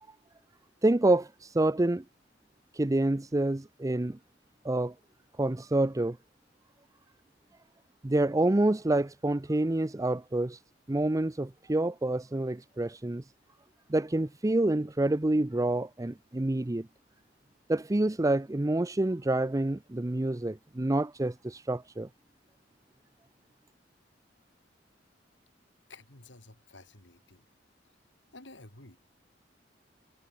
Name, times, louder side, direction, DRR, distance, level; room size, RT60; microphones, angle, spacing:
voice 1, 0.8-1.3 1.5-2.0 2.8-4.2 4.6-4.9 5.4-6.2 8.0-10.6 10.9-13.2 13.9-16.9 17.7-22.1, right 2 dB, 20° right, 0.6 m, -27 dB
voice 2, 25.9-27.4 28.3-29.0, left 2 dB, 75° left, 5.3 m, -52 dB
head